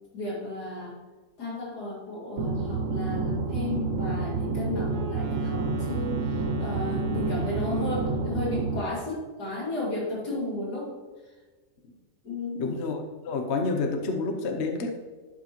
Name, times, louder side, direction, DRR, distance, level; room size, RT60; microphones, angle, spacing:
voice 1, 0.1-1.0 1.4-10.9 11.2-11.3 12.2-12.8, left 2 dB, 75° left, -5 dB, 3.1 m, -34 dB
sound 1, 2.4-8.8, right 3 dB, 60° right, 1.1 m, -29 dB
Wind instrument woodwind instrument, 4.8-8.5, right 3 dB, 75° right, 0.4 m, -41 dB
voice 2, 12.5-15.0, left 3 dB, 50° left, 4 dB, 1.0 m, -29 dB
11.0 x 5.9 x 3.1 m, 1.4 s
omnidirectional pair, 1.7 m